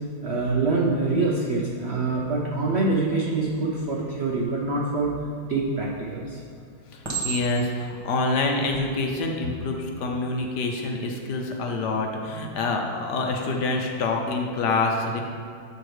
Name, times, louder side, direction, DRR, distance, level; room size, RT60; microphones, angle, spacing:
voice 1, 0.2-5.1 5.5-6.4, right 3 dB, 80° right, -3 dB, 0.5 m, -25 dB
Chink clink, 5.7-6.1 7.0-7.8 8.6-8.8, right 6 dB, 15° right, 1.2 m, -32 dB
voice 2, 7.2-15.2, left 3 dB, 65° left, 2 dB, 1.2 m, -26 dB
8.1 x 4.5 x 4.8 m, 2.3 s
omnidirectional pair, 2.1 m